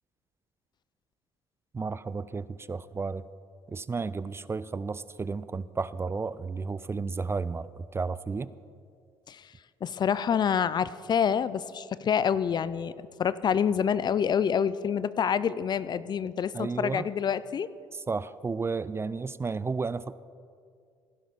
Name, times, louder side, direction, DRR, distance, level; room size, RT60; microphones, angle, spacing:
voice 1, 1.7-3.2 3.7-8.5 16.5-17.1 18.1-20.1, right 4 dB, 25° right, 16 dB, 0.4 m, -32 dB
voice 2, 9.8-17.7, left 7 dB, 40° left, 17 dB, 0.5 m, -27 dB
17.0 x 11.5 x 4.2 m, 2.2 s
hypercardioid pair, 65°, 11 cm